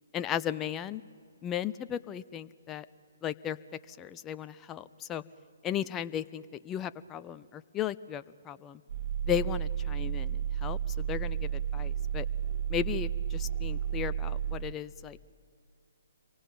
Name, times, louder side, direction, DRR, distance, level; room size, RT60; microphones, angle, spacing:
voice 1, 0.1-1.0 1.4-2.9 3.2-3.6 3.9-5.2 5.6-8.8 9.2-12.3 12.7-15.2, left 9 dB, 15° left, 14 dB, 0.6 m, -35 dB
sound 1, 8.9-14.6, right 9 dB, 45° right, 2.5 m, -32 dB
27.0 x 23.0 x 8.9 m, 2.2 s
figure-of-eight pair, 130°, 0 cm